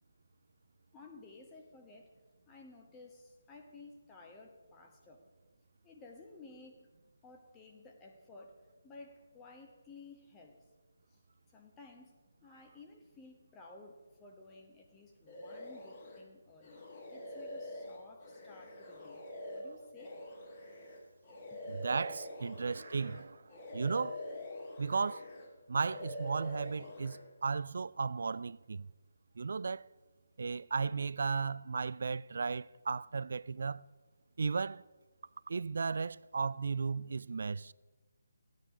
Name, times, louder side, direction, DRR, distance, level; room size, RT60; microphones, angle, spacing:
voice 1, 0.9-2.1 2.5-5.2 5.8-6.9 7.2-8.5 8.8-10.6 11.1-11.2 11.5-12.1 12.4-16.8 17.1-20.2 21.5-21.6, left 3 dB, 15° left, 1.2 m, -55 dB
sound 1, 15.3-16.2 16.6-23.2 23.5-25.5 25.8-27.2, left 1 dB, 30° left, 2.3 m, -45 dB
voice 2, 21.7-23.4 23.7-24.2 24.8-25.3 25.7-28.9 29.4-29.9 30.4-33.8 34.4-34.8 35.5-37.7, right 5 dB, 60° right, 0.3 m, -35 dB
15.5 x 9.4 x 5.0 m
figure-of-eight pair, 155°, 0 cm